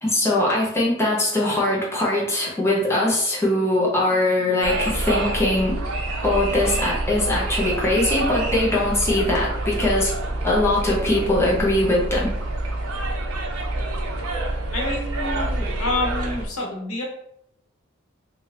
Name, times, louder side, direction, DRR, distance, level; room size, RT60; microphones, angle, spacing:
voice 1, 0.0-5.8 6.2-10.1 10.4-12.3, left 1 dB, 10° left, -5 dB, 0.8 m, -21 dB
sound 1, 4.6-16.5, right 1 dB, 90° right, 0.5 m, -27 dB
voice 2, 14.7-17.0, left 2 dB, 80° left, -1 dB, 0.9 m, -28 dB
2.9 x 2.6 x 3.2 m, 0.77 s
head